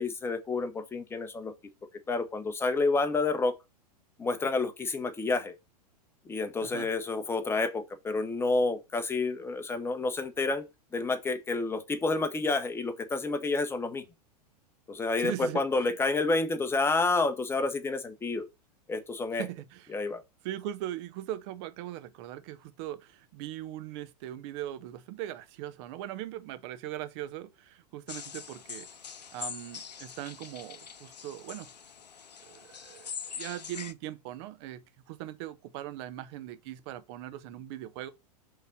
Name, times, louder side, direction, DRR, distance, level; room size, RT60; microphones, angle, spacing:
voice 1, 0.0-1.5 2.1-3.5 4.2-5.5 6.3-10.6 10.9-14.0 14.9-18.5 18.9-19.4 19.9-20.2, left 3 dB, 10° left, 1.0 m, -29 dB
voice 2, 15.2-15.9 19.4-20.0 20.4-28.9 29.3-31.7 32.5-34.8 35.1-38.1, right 13 dB, 40° right, 0.8 m, -40 dB
sound 1, 28.1-33.9, left 7 dB, 80° left, 0.6 m, -43 dB
5.3 x 3.8 x 5.9 m
figure-of-eight pair, 100°, 21 cm